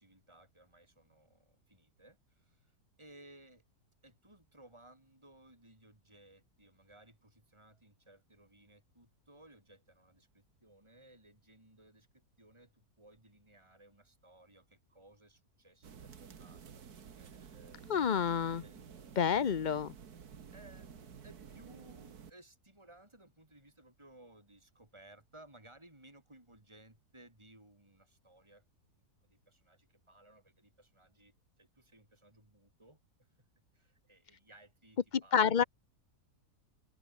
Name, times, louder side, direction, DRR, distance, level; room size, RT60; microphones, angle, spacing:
voice 1, 0.0-3.6 4.0-17.8 18.6-19.6 20.5-28.7 29.3-33.5 33.7-35.7, right 1 dB, 15° right, 5.8 m, -60 dB
sound 1, 15.8-22.3, right 7 dB, 75° right, 2.1 m, -52 dB
voice 2, 17.9-18.6 19.2-19.9 35.3-35.6, left 7 dB, 40° left, 0.7 m, -28 dB
omnidirectional pair, 1.7 m